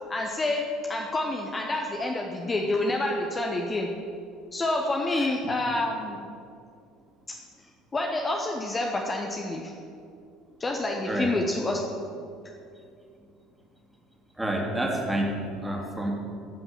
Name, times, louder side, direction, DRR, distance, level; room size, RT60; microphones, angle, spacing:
voice 1, 0.1-3.9 4.5-6.3 7.9-9.7 10.6-11.8, left 2 dB, 20° left, 1 dB, 1.0 m, -28 dB
voice 2, 14.4-16.1, right 1 dB, 10° right, 0 dB, 2.4 m, -29 dB
15.0 x 5.9 x 7.1 m, 2.5 s
figure-of-eight pair, 60°, 0 cm